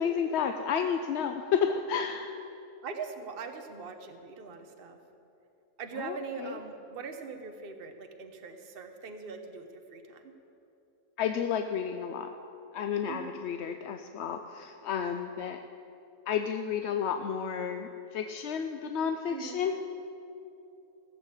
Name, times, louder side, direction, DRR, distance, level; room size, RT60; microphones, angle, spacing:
voice 1, 0.0-2.3 6.0-6.2 6.4-6.6 11.2-12.3 12.7-15.6 16.3-19.7, left 7 dB, 65° left, 7 dB, 0.7 m, -31 dB
voice 2, 2.8-5.0 5.8-10.3 13.1-13.4 19.3-19.6, right 5 dB, 45° right, 6 dB, 1.1 m, -41 dB
16.0 x 7.2 x 8.1 m, 2.8 s
omnidirectional pair, 1.5 m